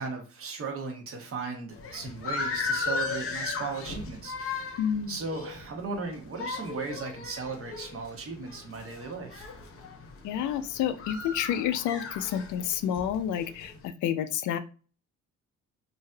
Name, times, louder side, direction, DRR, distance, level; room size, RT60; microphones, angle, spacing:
voice 1, 0.0-4.8 5.1-9.5, right 4 dB, 45° right, 4 dB, 1.0 m, -37 dB
sound 1, 1.7-13.9, left 4 dB, 45° left, 0.8 m, -37 dB
voice 2, 4.8-5.2 10.2-14.6, left 9 dB, 75° left, 12 dB, 0.4 m, -29 dB
3.2 x 2.6 x 2.3 m, 0.38 s
cardioid pair, 90°, 30 cm